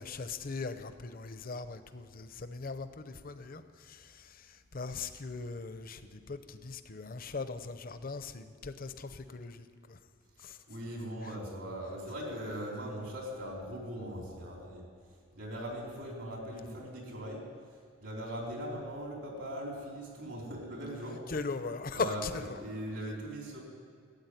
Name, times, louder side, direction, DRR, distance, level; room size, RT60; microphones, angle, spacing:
voice 1, 0.0-10.0 10.4-10.6 21.3-22.6, left 4 dB, 45° left, 11 dB, 0.7 m, -39 dB
voice 2, 10.7-14.8 15.4-17.4 18.0-21.3 21.9-23.6, equal, 75° right, -1 dB, 4.0 m, -40 dB
13.5 x 8.6 x 9.9 m, 2.1 s
head